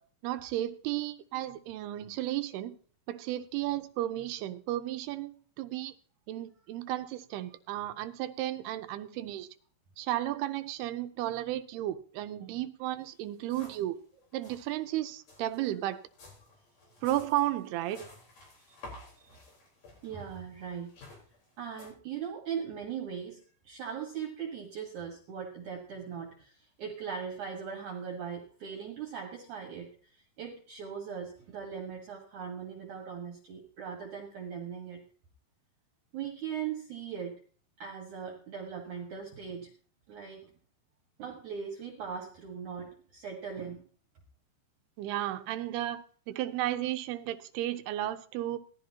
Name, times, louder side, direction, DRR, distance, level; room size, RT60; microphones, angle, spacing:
voice 1, 0.2-2.7 3.1-5.9 6.3-9.5 10.0-14.0 14.3-16.0 17.0-18.1 45.0-48.6, right 14 dB, 80° right, 10 dB, 2.7 m, -33 dB
sound 1, 13.0-13.1 13.3-14.0 14.2-14.7 15.2-21.9, left 2 dB, 60° left, 5.9 m, -52 dB
voice 2, 19.0-19.4 20.0-20.9 21.6-35.0 36.1-37.4 37.8-39.7 40.1-40.5 41.2-43.8, right 7 dB, 60° right, 1 dB, 2.6 m, -40 dB
18.0 x 13.0 x 2.8 m, 0.43 s
omnidirectional pair, 4.6 m